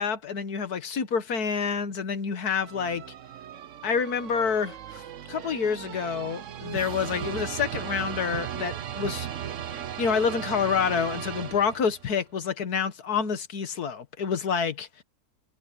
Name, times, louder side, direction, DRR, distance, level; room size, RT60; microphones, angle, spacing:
voice 1, 0.0-3.0 3.8-5.0 5.3-9.3 10.0-15.0, left 6 dB, 85° left, 2.0 m, -28 dB
sound 1, 2.6-12.1, right 9 dB, 60° right, 1.1 m, -37 dB
omnidirectional pair, 1.6 m